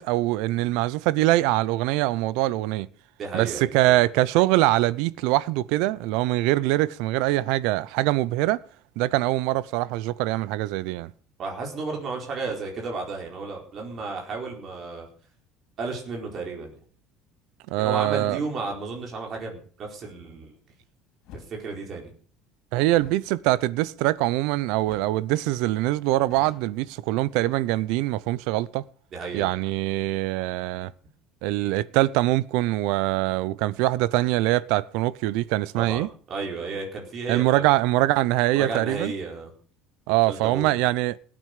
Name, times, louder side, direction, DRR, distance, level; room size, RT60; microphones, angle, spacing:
voice 1, 0.0-2.9 3.3-8.6 9.0-11.1 17.7-18.4 22.7-28.8 29.3-30.9 31.4-36.1 37.3-39.1 40.1-41.2, right 17 dB, 70° right, 0.7 m, -23 dB
voice 2, 3.2-4.0 11.4-15.1 15.8-16.8 17.8-20.5 21.5-22.1 29.1-29.5 35.8-37.6 38.5-39.5 40.3-40.7, right 4 dB, 30° right, 4.5 m, -33 dB
sound 1, 21.2-21.5 22.9-24.5 24.8-25.2 25.5-25.6 26.0-27.5, left 5 dB, 55° left, 5.0 m, -49 dB
18.0 x 9.0 x 6.6 m
cardioid pair, 170°, 0 cm